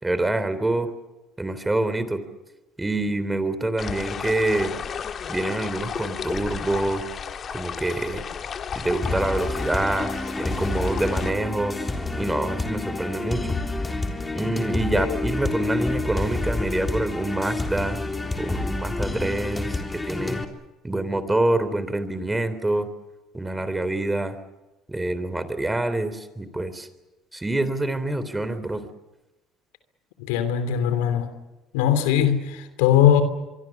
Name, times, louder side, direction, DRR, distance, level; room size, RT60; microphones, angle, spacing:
voice 1, 0.0-0.9 1.4-2.2 2.8-4.8 5.3-7.0 7.5-8.2 8.7-10.1 10.4-11.8 12.2-13.6 14.3-18.0 18.4-20.4 20.8-22.9 23.3-24.4 24.9-26.9 27.3-28.9, right 2 dB, 15° right, 12 dB, 3.6 m, -26 dB
sound 1, 3.8-11.3, left 7 dB, 45° left, 1.8 m, -33 dB
sound 2, 9.0-20.4, left 2 dB, 15° left, 3.7 m, -28 dB
voice 2, 30.2-31.3 31.7-33.2, left 10 dB, 85° left, 11 dB, 2.9 m, -20 dB
24.5 x 24.0 x 7.2 m, 1.1 s
supercardioid pair, 75°, 0 cm